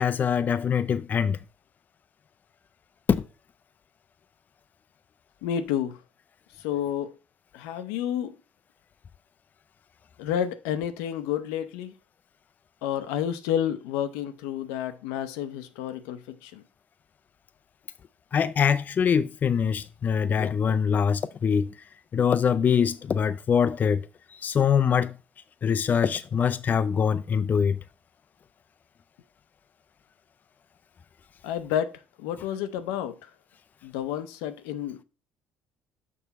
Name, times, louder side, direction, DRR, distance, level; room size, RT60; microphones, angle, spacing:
voice 1, 0.0-1.4 3.1-3.2 18.3-21.7 22.1-24.0 24.4-25.1 25.6-27.8, left 7 dB, 40° left, 0.4 m, -23 dB
voice 2, 5.4-6.0 6.6-7.1 7.5-8.3 10.2-11.9 12.8-16.6 31.4-33.3 33.8-35.0, left 10 dB, 85° left, 0.6 m, -30 dB
6.1 x 5.5 x 4.0 m
supercardioid pair, 75°, 4 cm